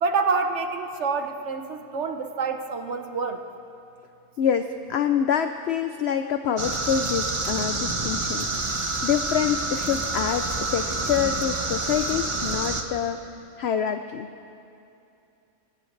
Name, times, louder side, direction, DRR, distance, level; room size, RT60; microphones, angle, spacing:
voice 1, 0.0-3.4, right 4 dB, 55° right, 6 dB, 1.1 m, -27 dB
voice 2, 4.4-13.2 13.6-14.3, left 8 dB, 60° left, 8 dB, 0.7 m, -26 dB
sound 1, 6.6-12.8, right 2 dB, 25° right, 0.8 m, -28 dB
24.0 x 17.5 x 3.3 m, 2.7 s
omnidirectional pair, 1.5 m